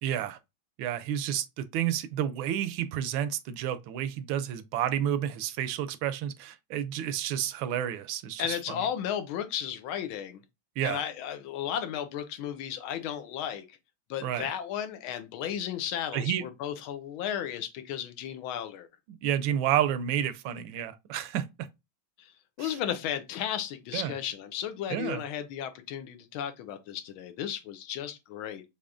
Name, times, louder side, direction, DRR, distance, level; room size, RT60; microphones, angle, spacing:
voice 1, 0.0-0.4 0.8-8.6 10.8-11.0 14.2-14.5 16.1-16.4 19.2-21.7 22.6-22.7 23.9-24.1 24.9-25.2, right 10 dB, 80° right, 1.3 m, -30 dB
voice 2, 8.4-10.4 10.8-13.8 14.1-18.9 22.2-22.3 22.6-28.6, left 10 dB, 80° left, 1.5 m, -34 dB
6.5 x 2.9 x 2.5 m
omnidirectional pair, 2.2 m